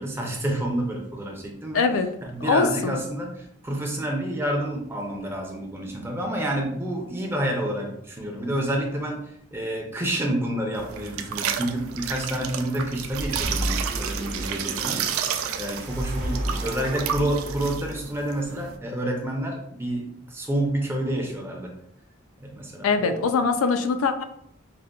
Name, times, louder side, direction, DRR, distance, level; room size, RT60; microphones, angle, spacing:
voice 1, 0.0-1.9 2.2-9.2 9.5-15.0 15.6-21.7 22.4-23.2, right 1 dB, 10° right, 0 dB, 0.5 m, -29 dB
voice 2, 1.7-2.1 2.4-2.9 22.8-24.2, left 4 dB, 90° left, 8 dB, 0.4 m, -22 dB
sound 1, 10.7-18.8, right 8 dB, 90° right, 0.3 m, -32 dB
sound 2, 13.1-18.2, right 1 dB, 55° right, 0.6 m, -32 dB
4.9 x 2.1 x 2.2 m, 0.71 s
head